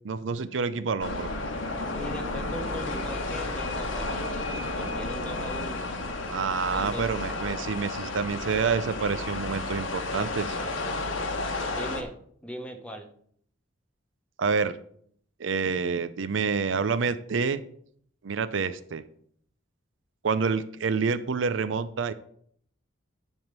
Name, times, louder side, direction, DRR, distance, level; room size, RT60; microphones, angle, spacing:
voice 1, 0.0-1.3 6.3-10.6 14.4-14.7 15.4-17.6 18.2-19.0 20.2-22.1, right 5 dB, 75° right, 13 dB, 0.5 m, -28 dB
sound 1, 1.0-12.0, left 2 dB, 80° left, 1.3 m, -32 dB
voice 2, 1.9-5.9 6.7-7.1 11.7-12.1 12.4-13.1, equal, 5° left, 4 dB, 1.0 m, -39 dB
10.5 x 3.7 x 6.6 m, 0.63 s
head